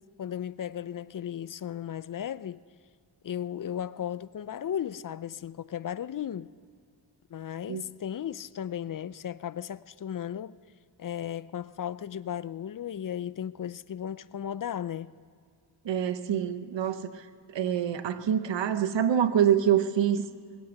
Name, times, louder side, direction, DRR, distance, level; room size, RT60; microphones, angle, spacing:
voice 1, 0.2-2.6 3.2-6.5 7.3-10.6 11.0-15.1, left 9 dB, 50° left, 0.5 m, -35 dB
voice 2, 15.8-17.2 17.5-20.3, right 9 dB, 85° right, 0.9 m, -26 dB
21.5 x 8.4 x 8.0 m
cardioid pair, 60°, 43 cm